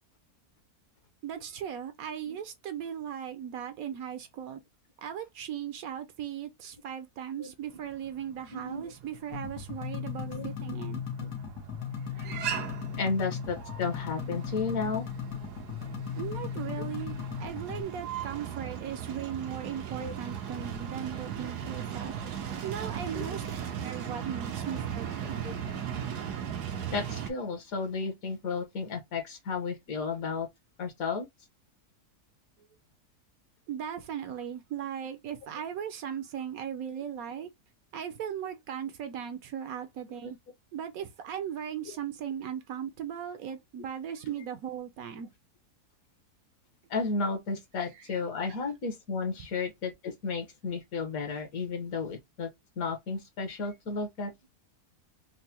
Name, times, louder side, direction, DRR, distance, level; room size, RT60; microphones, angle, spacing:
voice 1, 1.2-4.6 5.0-11.0 16.2-17.1 17.4-22.1 22.6-23.4 23.7-25.4 26.1-26.3 33.7-37.5 37.9-40.4 40.7-45.3, right 9 dB, 70° right, 1.0 m, -38 dB
sound 1, 7.8-27.3, right 8 dB, 90° right, 1.3 m, -38 dB
voice 2, 8.5-8.9 10.2-10.8 11.2-11.3 13.0-15.1 20.0-20.1 23.1-23.3 25.4-25.5 26.9-30.5 30.8-31.2 36.9-37.0 40.2-40.3 46.9-52.5 52.8-54.3, left 4 dB, 65° left, 1.4 m, -33 dB
sound 2, 9.3-17.8, left 7 dB, 80° left, 1.6 m, -37 dB
4.6 x 2.1 x 2.8 m
omnidirectional pair, 1.7 m